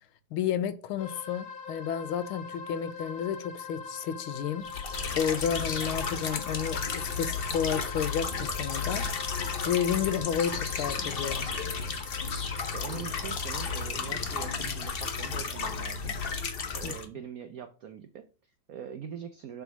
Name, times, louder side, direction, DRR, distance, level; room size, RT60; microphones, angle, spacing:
voice 1, 0.3-4.7 5.2-11.5 16.8-16.9, left 8 dB, 85° left, 1.6 m, -31 dB
sound 1, 1.0-14.6, left 5 dB, 70° left, 1.8 m, -43 dB
sound 2, 4.6-17.1, left 5 dB, 45° left, 0.7 m, -33 dB
voice 2, 12.7-16.1 16.7-19.6, right 8 dB, 85° right, 0.7 m, -43 dB
7.1 x 3.5 x 5.9 m
omnidirectional pair, 2.3 m